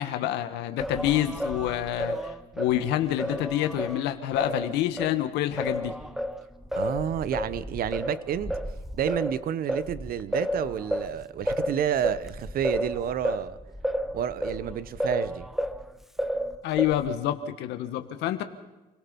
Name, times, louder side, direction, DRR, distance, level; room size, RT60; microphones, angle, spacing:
voice 1, 0.0-5.9 16.6-18.4, left 12 dB, 90° left, 1.7 m, -27 dB
Singing, 0.8-5.2 5.6-15.8 16.2-17.2, equal, ahead, 1.0 m, -32 dB
voice 2, 6.7-8.5 8.9-13.6 14.1-15.5, right 9 dB, 60° right, 1.0 m, -30 dB
28.5 x 18.0 x 5.4 m
cardioid pair, 110°, 17 cm